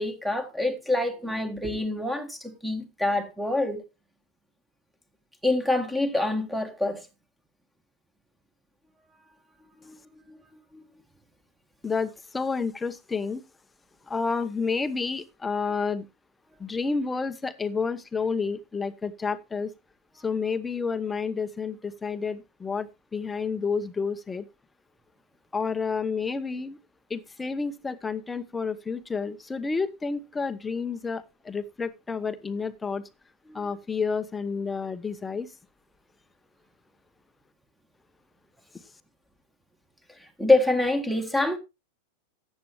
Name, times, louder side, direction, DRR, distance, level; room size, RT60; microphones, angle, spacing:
voice 1, 0.0-3.8 5.4-7.1 9.8-10.0 10.3-10.4 10.7-10.8 40.4-41.6, left 2 dB, 5° right, 1.6 m, -26 dB
voice 2, 11.8-13.4 14.1-16.1 16.6-19.7 20.2-24.4 25.5-26.8 27.1-33.0 33.5-35.5, left 5 dB, 10° left, 0.9 m, -30 dB
14.0 x 9.0 x 3.1 m
figure-of-eight pair, 90°, 0 cm